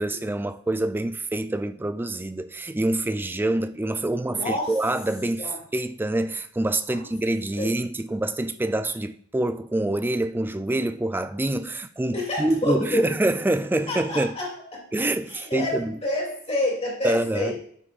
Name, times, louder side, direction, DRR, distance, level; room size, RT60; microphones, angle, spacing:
voice 1, 0.0-14.4 14.9-16.0 17.0-17.6, right 1 dB, 10° right, 0.3 m, -26 dB
voice 2, 4.3-4.7 5.4-5.6 6.9-7.1 7.6-7.8 12.1-13.1 13.9-17.7, left 2 dB, 30° left, 2.4 m, -29 dB
9.6 x 8.3 x 2.4 m
head